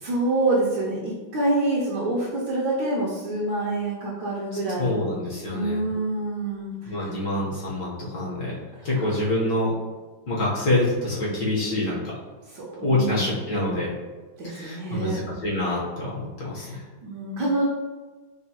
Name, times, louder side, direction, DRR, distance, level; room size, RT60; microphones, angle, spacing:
voice 1, 0.0-5.2 5.5-7.1 9.0-9.1 12.5-13.4 14.4-15.2 16.6-17.6, right 2 dB, 70° right, -6 dB, 1.3 m, -27 dB
voice 2, 4.8-5.9 6.9-8.6 8.8-9.7 10.3-12.1 12.8-13.9 14.4-16.8, left 1 dB, 60° left, -5 dB, 1.4 m, -26 dB
5.5 x 2.2 x 2.8 m, 1.3 s
omnidirectional pair, 2.0 m